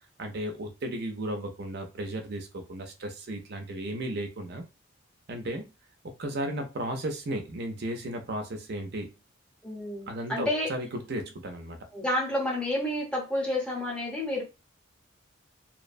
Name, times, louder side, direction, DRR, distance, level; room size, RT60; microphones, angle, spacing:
voice 1, 0.2-4.6 5.3-5.7 6.0-9.1 10.1-11.8, right 1 dB, 50° right, 0.5 m, -34 dB
voice 2, 9.6-10.7 11.9-14.4, left 1 dB, 5° left, 0.8 m, -30 dB
2.7 x 2.1 x 2.5 m
head